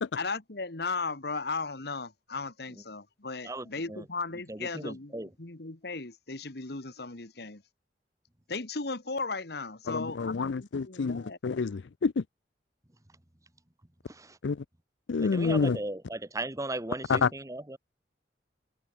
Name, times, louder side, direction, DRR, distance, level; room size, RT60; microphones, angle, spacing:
voice 1, 0.1-7.6 8.5-11.4, left 3 dB, 65° left, 1.7 m, -36 dB
voice 2, 3.4-4.0 4.5-5.3 14.1-14.4 15.2-17.8, right 2 dB, 20° right, 1.5 m, -37 dB
voice 3, 9.9-12.2 14.4-14.6 15.1-15.8 17.1-17.3, left 5 dB, 90° left, 0.5 m, -28 dB
head